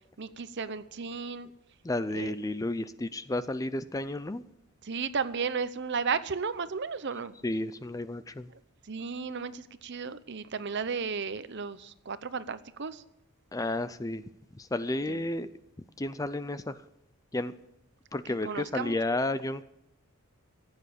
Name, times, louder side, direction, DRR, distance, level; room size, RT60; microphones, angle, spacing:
voice 1, 0.2-1.5 2.1-2.3 4.8-7.3 8.9-13.0 15.1-15.2 18.4-19.0, right 5 dB, 50° right, 14 dB, 0.7 m, -34 dB
voice 2, 1.8-4.4 7.4-8.5 13.5-14.2 14.5-15.5 16.0-16.8 17.3-17.5 18.1-19.6, left 2 dB, 15° left, 13 dB, 0.4 m, -32 dB
15.5 x 9.2 x 8.4 m, 0.81 s
head